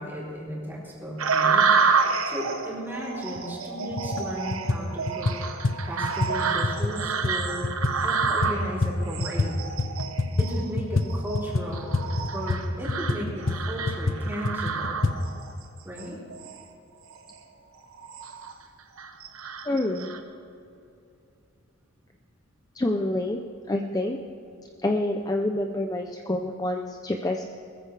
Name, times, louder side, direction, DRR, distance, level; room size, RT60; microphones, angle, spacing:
voice 1, 0.0-1.7 2.3-5.3 5.9-7.7 8.0-9.6 10.4-11.9 12.3-15.1 15.8-16.2, equal, 10° right, -6 dB, 3.8 m, -35 dB
sound 1, 1.2-15.5 16.0-16.6 17.1-17.3 17.8-18.5 19.0-20.2, right 5 dB, 85° right, 1.1 m, -28 dB
sound 2, 3.4-3.5 3.9-4.2 4.5-9.5 9.8-15.2, left 2 dB, 70° left, 0.9 m, -27 dB
voice 2, 19.6-20.1 22.7-23.4 23.7-24.2 24.8-27.4, left 1 dB, 20° left, 3 dB, 0.5 m, -27 dB
21.5 x 14.5 x 3.4 m, 2.6 s
head